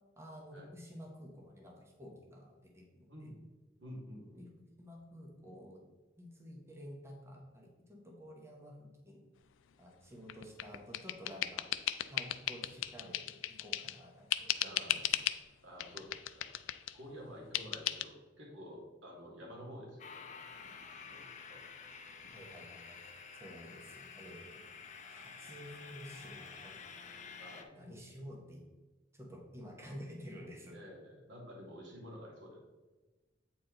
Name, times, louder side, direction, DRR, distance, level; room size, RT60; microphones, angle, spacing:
voice 1, 0.2-3.3 4.4-5.8 6.2-9.3 9.8-11.7 12.1-15.0 22.3-23.0 23.4-24.6 25.1-26.8 27.2-27.3 27.7-28.6 29.1-30.8, equal, 15° right, -1 dB, 0.9 m, -51 dB
voice 2, 3.1-3.4 3.8-4.5 14.6-15.1 15.6-16.5 16.9-20.2 21.1-21.6 27.4-27.9 30.7-32.6, equal, 80° right, -2 dB, 2.1 m, -50 dB
sound 1, 10.3-14.0 14.3-15.4 15.8-17.0 17.5-18.1, left 12 dB, 90° left, 0.4 m, -36 dB
sound 2, 20.0-27.6, left 5 dB, 40° left, 0.7 m, -50 dB
8.2 x 4.5 x 3.8 m, 1.2 s
head